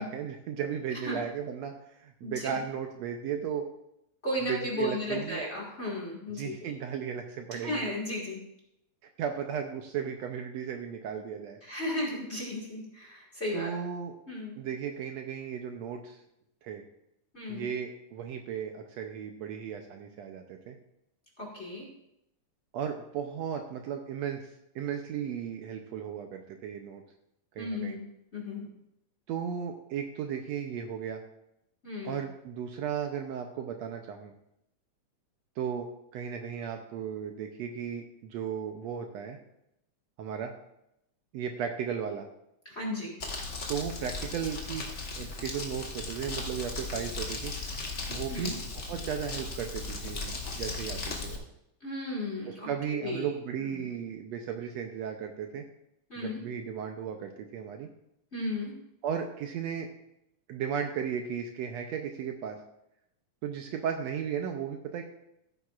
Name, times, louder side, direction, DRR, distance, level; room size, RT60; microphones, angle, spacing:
voice 1, 0.0-1.7 2.0-3.7 4.5-5.4 6.4-7.9 9.2-11.6 13.5-14.1 14.6-16.2 16.6-16.8 17.5-20.8 22.7-24.4 24.8-27.0 27.6-28.0 29.3-31.2 32.0-34.3 35.6-39.4 40.2-40.5 41.3-42.3 43.7-47.5 48.1-51.4 52.5-55.6 56.2-57.9 59.0-59.9 60.5-62.6 63.4-65.0, right 8 dB, 75° right, 4 dB, 1.8 m, -35 dB
voice 2, 2.2-2.6 4.2-6.7 7.6-8.4 11.6-13.7 14.3-14.6 17.3-17.7 21.4-21.9 27.6-28.0 28.3-28.7 31.8-32.2 42.7-43.1 48.3-48.6 51.8-52.7 53.0-53.3 53.7-53.9 56.1-56.4 58.3-58.7, left 1 dB, 25° left, -3 dB, 1.8 m, -34 dB
Crumpling crinkling, 43.2-51.4, left 3 dB, 50° left, 0.8 m, -37 dB
15.0 x 9.1 x 2.5 m, 0.81 s
omnidirectional pair, 3.4 m